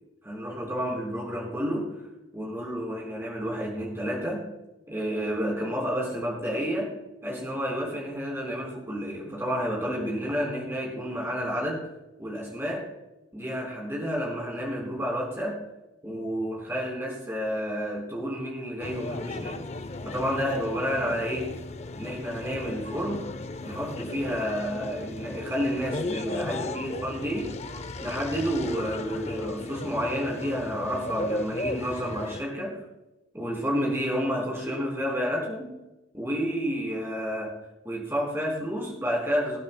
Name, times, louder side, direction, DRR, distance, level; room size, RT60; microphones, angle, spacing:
voice 1, 0.2-1.9 2.3-4.4 4.9-6.9 7.2-11.9 12.2-12.8 13.3-15.6 16.0-19.6 20.0-21.6 22.0-23.3 23.6-27.6 28.0-32.8 33.3-35.8 36.1-37.5 37.8-39.6, equal, 15° right, -2 dB, 4.0 m, -30 dB
sound 1, 18.8-32.4, left 2 dB, 35° left, 0.5 m, -36 dB
24.5 x 9.3 x 2.2 m, 1.0 s
head